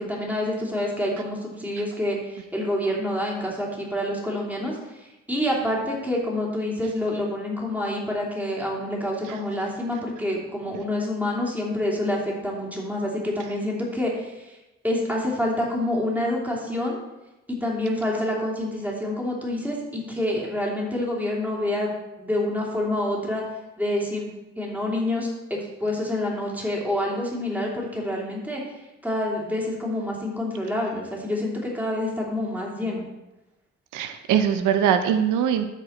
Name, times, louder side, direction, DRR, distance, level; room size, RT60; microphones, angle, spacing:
voice 1, 0.0-14.6 14.8-17.0 17.5-21.9 22.2-23.4 23.8-24.3 24.6-33.0, left 1 dB, 5° right, -3 dB, 2.8 m, -27 dB
voice 2, 33.9-35.7, right 8 dB, 90° right, 8 dB, 0.7 m, -22 dB
13.0 x 5.0 x 4.3 m, 1.0 s
cardioid pair, 90°, 30 cm